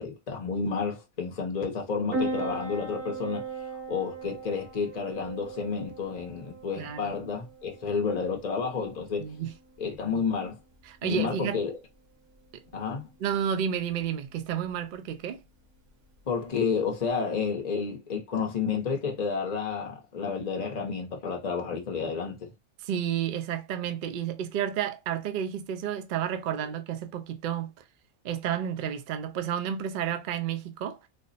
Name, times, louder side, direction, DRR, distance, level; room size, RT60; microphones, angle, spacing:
voice 1, 0.0-3.5 3.9-9.3 9.8-10.6 11.0-11.8 12.7-13.1 16.3-22.5, left 5 dB, 40° left, 0.6 m, -30 dB
Piano, 2.1-17.1, right 2 dB, 55° right, 1.2 m, -40 dB
voice 2, 6.8-7.2 9.2-9.5 10.8-11.6 12.5-12.8 13.2-15.4 22.8-27.7 28.2-31.0, right 9 dB, 70° right, 0.4 m, -31 dB
3.3 x 2.0 x 4.0 m
omnidirectional pair, 1.5 m